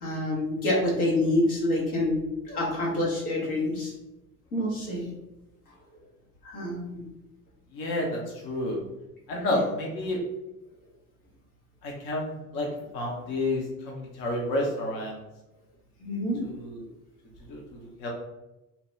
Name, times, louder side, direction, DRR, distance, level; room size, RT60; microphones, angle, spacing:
voice 1, 0.0-2.2 2.4-3.9 4.5-5.1 6.4-7.0 9.5-9.6 16.0-16.4, left 1 dB, 80° left, -5 dB, 1.1 m, -27 dB
voice 2, 7.7-8.8 9.3-10.2 11.8-12.7 12.9-15.2 16.4-16.9 17.5-18.1, left 1 dB, 50° left, -2 dB, 0.8 m, -30 dB
2.8 x 2.2 x 3.1 m, 0.98 s
figure-of-eight pair, 65°, 44 cm